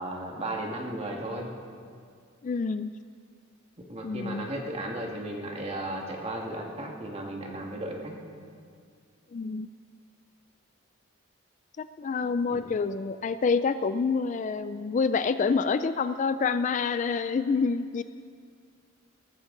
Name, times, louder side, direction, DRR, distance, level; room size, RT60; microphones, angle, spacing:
voice 1, 0.0-1.5 3.9-8.2 12.5-12.7, right 1 dB, 30° right, 0 dB, 1.8 m, -35 dB
voice 2, 2.4-2.9 4.0-4.5 9.3-9.7 11.8-18.0, left 5 dB, 35° left, 12 dB, 0.3 m, -27 dB
19.0 x 14.5 x 3.8 m, 2.2 s
head